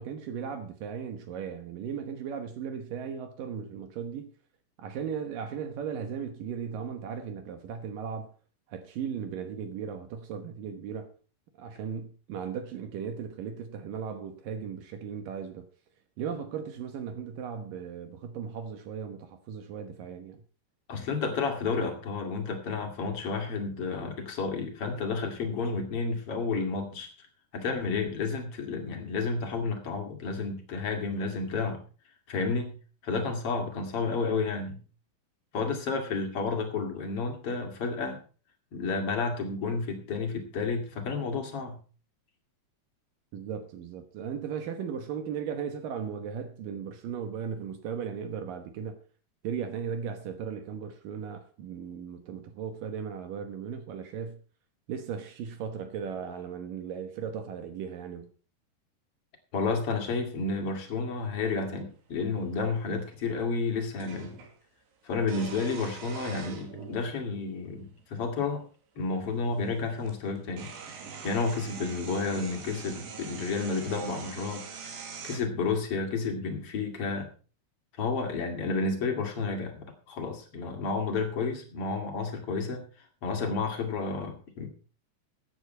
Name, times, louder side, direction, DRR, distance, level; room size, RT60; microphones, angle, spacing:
voice 1, 0.0-4.3 4.8-8.3 8.7-11.1 11.6-15.7 16.2-20.4 43.3-49.0 49.4-54.4 54.9-58.3, right 7 dB, 65° right, 2.4 m, -37 dB
voice 2, 20.9-27.1 27.5-31.8 32.3-32.7 33.0-34.8 35.5-38.2 38.7-41.8 59.5-64.3 65.0-68.6 69.0-70.7 71.2-77.3 78.0-82.8 83.2-84.7, left 4 dB, 40° left, 2.7 m, -31 dB
sound 1, 62.3-62.4 64.0-64.5 65.2-67.1 68.0-68.1 69.6-69.7 70.0-75.4, right 6 dB, 90° right, 4.5 m, -42 dB
15.5 x 9.8 x 4.5 m
omnidirectional pair, 4.8 m